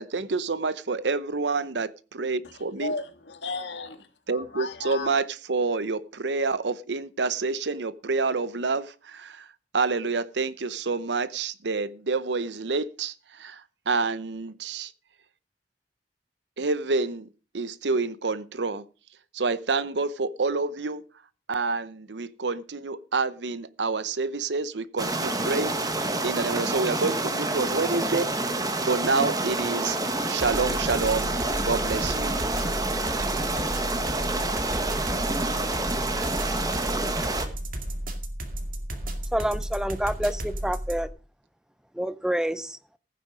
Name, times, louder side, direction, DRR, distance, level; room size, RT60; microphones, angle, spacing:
voice 1, 0.0-2.9 4.3-14.9 16.6-17.3 17.5-18.9 19.3-21.1 21.5-28.6 28.8-30.0 30.3-31.3 31.6-32.4, right 4 dB, 75° right, 0.8 m, -28 dB
voice 2, 2.8-5.1, left 3 dB, 80° left, 1.7 m, -35 dB
sound 1, 25.0-37.5, right 2 dB, 20° right, 1.5 m, -28 dB
sound 2, 30.4-41.1, right 1 dB, 55° right, 2.4 m, -33 dB
voice 3, 39.3-41.1 41.9-42.8, right 1 dB, 5° right, 0.6 m, -28 dB
15.5 x 9.3 x 5.0 m
head